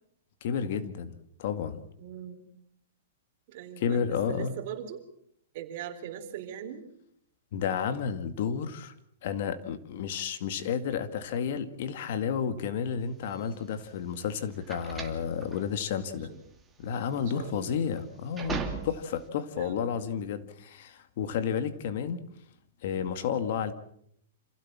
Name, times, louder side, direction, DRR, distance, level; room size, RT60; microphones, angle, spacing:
voice 1, 0.4-1.8 3.8-4.5 7.5-8.9 9.2-16.3 16.8-22.2 22.8-23.7, left 7 dB, 55° left, 11 dB, 2.1 m, -31 dB
voice 2, 2.0-2.5 3.5-5.0 5.5-6.9 16.0-16.4 17.1-17.9 19.6-19.8, right 9 dB, 50° right, 6 dB, 3.8 m, -41 dB
sound 1, 13.3-19.3, right 5 dB, 10° right, 2.5 m, -39 dB
27.5 x 16.5 x 7.5 m, 0.72 s
hypercardioid pair, 160°, 0 cm